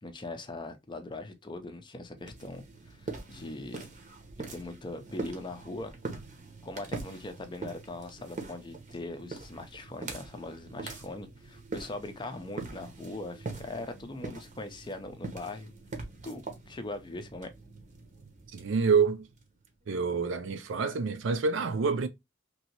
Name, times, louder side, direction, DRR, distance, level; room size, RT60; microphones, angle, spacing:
voice 1, 0.0-3.9 4.5-5.9 6.6-15.7 16.2-17.5, left 2 dB, 25° left, 0.5 m, -41 dB
sound 1, 2.2-19.7, right 3 dB, 40° right, 0.8 m, -43 dB
voice 2, 18.5-19.3 19.9-22.1, right 5 dB, 70° right, 0.4 m, -27 dB
3.0 x 2.7 x 2.8 m
head